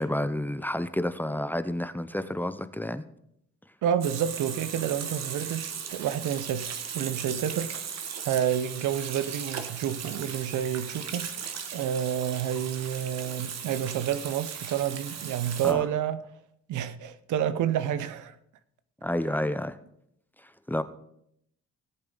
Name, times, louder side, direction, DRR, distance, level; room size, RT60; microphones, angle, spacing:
voice 1, 0.0-3.0 15.6-15.9 19.0-19.8 20.4-20.8, left 1 dB, 5° left, 0.7 m, -30 dB
voice 2, 3.8-7.7 8.2-16.2 16.7-18.4, right 9 dB, 80° right, 0.8 m, -29 dB
Water tap faucet / Sink (filling or washing), 4.0-15.7, right 7 dB, 60° right, 1.4 m, -37 dB
18.0 x 7.8 x 3.9 m
cardioid pair, 90°, 30 cm